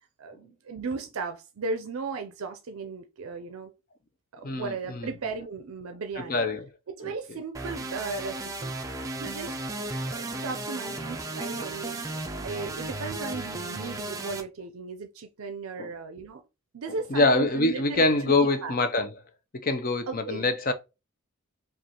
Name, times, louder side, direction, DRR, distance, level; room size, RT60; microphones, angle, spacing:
voice 1, 0.2-3.7 4.3-6.4 6.9-8.8 9.2-9.6 10.0-12.0 12.4-16.4 16.7-18.7 20.1-20.5, right 4 dB, 70° right, 0.5 m, -36 dB
voice 2, 4.4-5.1 6.3-6.7 7.0-7.1 15.8-15.9 17.1-19.1 19.5-20.7, left 2 dB, 40° left, 0.5 m, -25 dB
sound 1, 7.5-14.4, right 2 dB, 15° right, 0.4 m, -35 dB
5.2 x 2.4 x 2.9 m
head